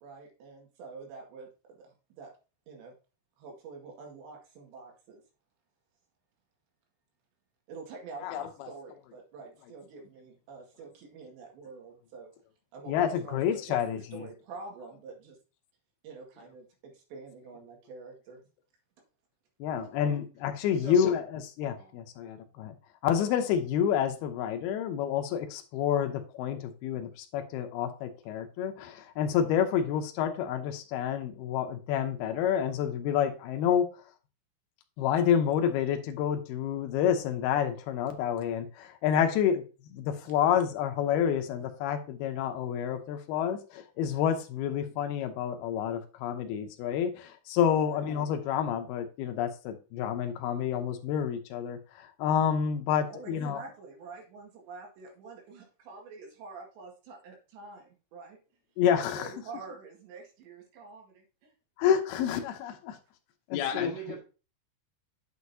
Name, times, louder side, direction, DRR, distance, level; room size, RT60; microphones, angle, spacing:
voice 1, 0.0-2.3 2.7-2.9 3.4-5.2 7.7-12.3 12.7-15.4 16.0-18.4 19.7-20.0 47.8-48.0 53.1-58.4 59.1-61.5, right 4 dB, 70° right, 1 dB, 4.0 m, -47 dB
voice 2, 8.2-8.7 12.9-14.0 19.6-22.8 23.0-33.9 35.0-39.6 39.9-53.6 58.8-59.3 61.8-63.0 63.5-63.9, left 9 dB, 85° left, 6 dB, 2.2 m, -29 dB
voice 3, 20.7-21.0 21.8-21.9 63.7-64.2, right 4 dB, 50° right, -3 dB, 1.8 m, -41 dB
9.3 x 6.4 x 2.7 m, 0.34 s
omnidirectional pair, 5.5 m